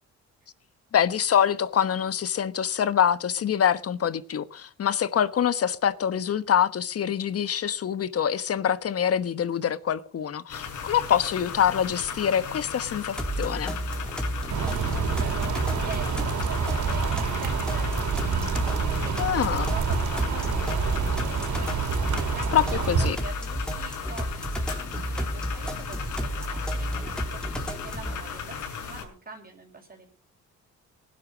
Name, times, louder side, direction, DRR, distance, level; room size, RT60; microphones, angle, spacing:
voice 1, 0.9-13.7 19.2-19.7 22.5-23.2, left 9 dB, 50° left, 1.3 m, -25 dB
sound 1, 10.5-29.0, left 6 dB, 75° left, 6.3 m, -37 dB
sound 2, 13.2-28.2, equal, 5° left, 4.0 m, -32 dB
sound 3, 14.5-23.1, right 6 dB, 70° right, 4.4 m, -28 dB
voice 2, 14.6-21.5 22.3-22.7 23.0-30.1, right 3 dB, 30° right, 5.8 m, -44 dB
19.0 x 11.5 x 5.2 m
cardioid pair, 90°, 30 cm